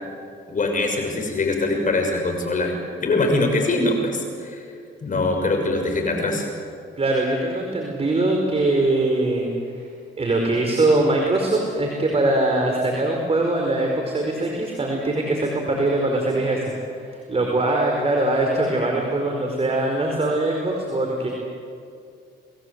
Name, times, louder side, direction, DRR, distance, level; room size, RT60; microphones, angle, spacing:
voice 1, 0.5-2.8 3.0-4.6 5.0-6.5, left 2 dB, 40° left, 3 dB, 6.2 m, -23 dB
voice 2, 7.0-9.8 10.2-16.6 17.1-21.3, right 2 dB, 30° right, 1 dB, 4.8 m, -22 dB
29.5 x 21.5 x 8.2 m, 2.3 s
cardioid pair, 90°, 20 cm